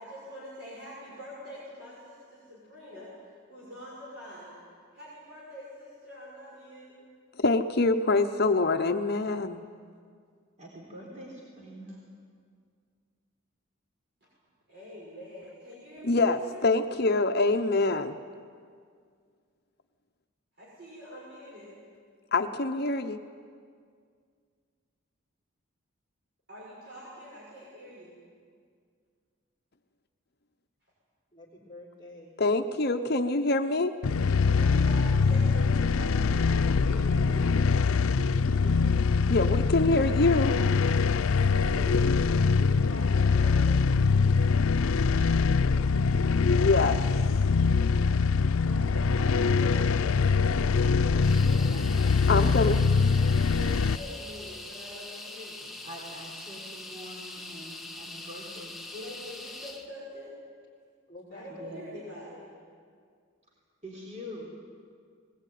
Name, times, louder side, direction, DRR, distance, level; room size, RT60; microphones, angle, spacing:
voice 1, 0.0-4.6 4.9-7.0 14.2-14.3 14.7-16.6 20.6-21.7 26.5-28.2 34.4-37.5 41.3-43.9 48.6-51.4 53.4-55.7 58.9-60.3 61.3-62.5, equal, 55° right, -7 dB, 6.3 m, -45 dB
voice 2, 7.4-9.6 16.0-18.2 22.3-23.2 32.4-33.9 39.3-40.5 46.4-47.0 52.3-52.8, left 3 dB, 50° left, 7 dB, 0.8 m, -25 dB
voice 3, 10.6-12.0 37.3-37.7 38.2-39.0 46.9-47.3 55.8-58.7 61.5-61.9 63.8-64.5, equal, 35° right, -3 dB, 3.7 m, -44 dB
voice 4, 31.3-32.4 51.4-52.5 61.1-61.8, left 1 dB, 15° left, -7 dB, 3.7 m, -50 dB
sound 1, 34.0-54.0, left 5 dB, 90° left, 0.5 m, -23 dB
sound 2, 51.2-59.9, left 2 dB, ahead, 1.3 m, -43 dB
21.0 x 19.0 x 9.3 m, 2.1 s
head